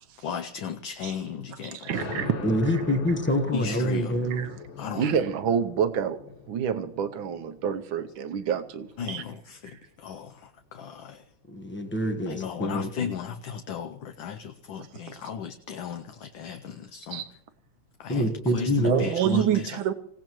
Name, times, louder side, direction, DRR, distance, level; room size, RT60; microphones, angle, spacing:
voice 1, 0.2-2.0 3.5-4.2 4.8-5.2 9.0-11.2 12.3-17.3 18.0-19.8, left 7 dB, 70° left, 6 dB, 1.4 m, -36 dB
voice 2, 1.6-2.4 2.7-2.8 4.3-4.5 4.9-6.2 6.5-9.2 17.1-17.3 18.8-19.9, right 8 dB, 70° right, 10 dB, 1.5 m, -27 dB
sound 1, 1.9-9.2, left 5 dB, 90° left, 2.3 m, -40 dB
voice 3, 2.4-4.5 11.5-12.9 18.1-19.4, equal, 10° left, 6 dB, 0.6 m, -26 dB
25.5 x 16.5 x 3.0 m, 0.76 s
omnidirectional pair, 2.4 m